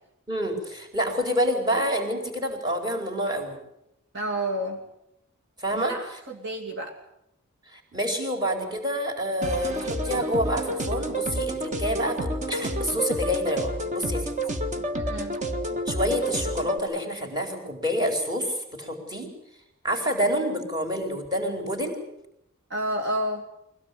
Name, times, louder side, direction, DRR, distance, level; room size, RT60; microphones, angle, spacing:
voice 1, 0.3-3.6 5.6-5.9 7.7-14.3 15.9-19.3 19.8-22.0, equal, 20° right, 2 dB, 4.4 m, -28 dB
voice 2, 4.1-4.8 5.7-7.0 14.9-15.4 22.7-23.4, right 1 dB, 55° right, 1 dB, 2.7 m, -30 dB
sound 1, 9.4-16.8, right 1 dB, 35° right, 1.7 m, -29 dB
24.0 x 17.0 x 8.5 m, 0.80 s
head